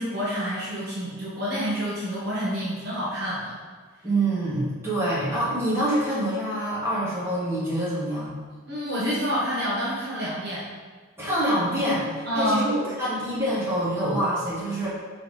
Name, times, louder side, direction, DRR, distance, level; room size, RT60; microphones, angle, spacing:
voice 1, 0.0-3.6 8.7-10.7 12.3-12.7, equal, 45° right, -7 dB, 1.4 m, -28 dB
voice 2, 4.0-8.4 11.2-14.9, right 1 dB, 10° right, -10 dB, 2.0 m, -26 dB
4.9 x 4.7 x 5.0 m, 1.5 s
head